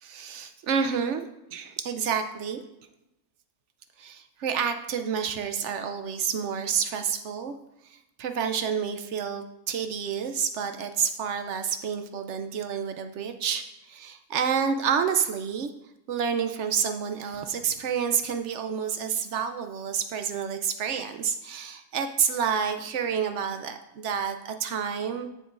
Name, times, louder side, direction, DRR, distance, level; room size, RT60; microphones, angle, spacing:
voice 1, 0.0-2.6 4.0-7.5 7.9-15.7 16.1-25.3, right 7 dB, 70° right, 8 dB, 0.7 m, -29 dB
9.2 x 7.7 x 2.5 m, 0.90 s
omnidirectional pair, 1.7 m